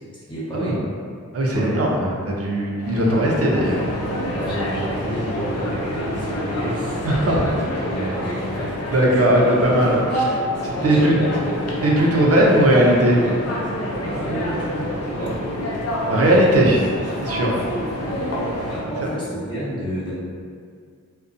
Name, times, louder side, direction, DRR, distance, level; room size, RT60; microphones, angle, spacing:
voice 1, 0.3-0.8 1.5-1.8 4.3-7.4 7.9-8.7 10.8-11.6 14.0-15.4 18.0-18.2 18.7-20.1, right 1 dB, 15° left, -10 dB, 1.0 m, -30 dB
voice 2, 1.3-3.9 7.0-7.5 8.9-10.4 10.8-11.2 11.8-13.3 16.1-16.9 17.2-17.6 19.0-19.1, right 1 dB, 50° right, -2 dB, 0.5 m, -18 dB
sound 1, 2.8-18.8, equal, 55° left, 0.5 m, -27 dB
2.5 x 2.1 x 2.5 m, 2.2 s
wide cardioid pair, 50°, 31 cm